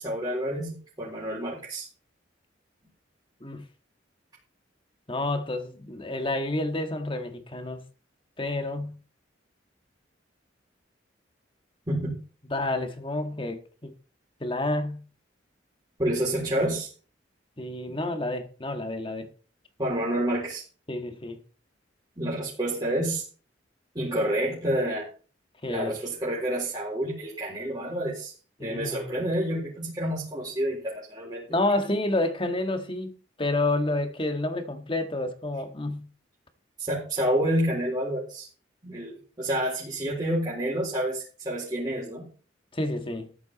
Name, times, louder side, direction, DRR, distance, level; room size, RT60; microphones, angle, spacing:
voice 1, 0.0-1.9 11.9-12.1 16.0-16.9 17.9-18.0 19.8-20.6 22.2-23.2 23.9-25.1 25.7-28.3 28.6-31.4 31.8-31.9 36.8-38.5 38.8-42.3, right 1 dB, 20° right, 4.1 m, -29 dB
voice 2, 5.1-7.8 8.4-9.0 12.5-13.9 14.4-15.0 17.6-19.3 20.9-21.4 25.6-26.0 28.6-29.2 31.5-33.1 33.4-36.1 42.7-43.3, left 2 dB, 25° left, 1.6 m, -29 dB
14.0 x 10.5 x 4.1 m
head